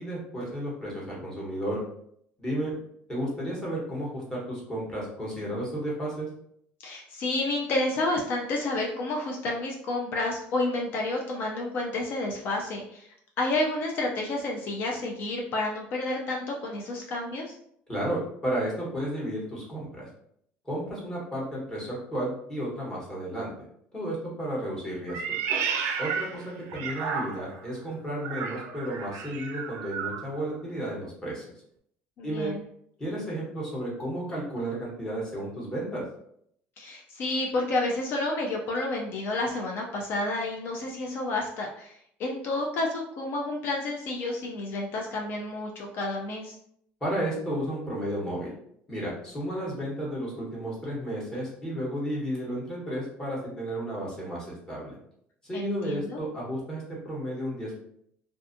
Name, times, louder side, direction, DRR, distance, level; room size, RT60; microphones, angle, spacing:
voice 1, 0.0-1.8 2.4-2.7 3.1-6.3 17.9-20.1 20.6-23.5 23.9-25.4 26.0-31.4 32.2-32.5 33.0-36.0 47.0-48.5 48.9-55.0 55.4-57.8, right 1 dB, 15° left, -5 dB, 1.1 m, -33 dB
voice 2, 6.8-13.1 13.4-17.6 32.2-32.6 36.8-46.6 55.5-56.2, left 2 dB, 50° left, 0 dB, 0.4 m, -30 dB
Meow, 25.1-27.6 28.2-30.3, right 6 dB, 70° right, 0.3 m, -32 dB
2.5 x 2.4 x 2.5 m, 0.70 s
cardioid pair, 130°, 4 cm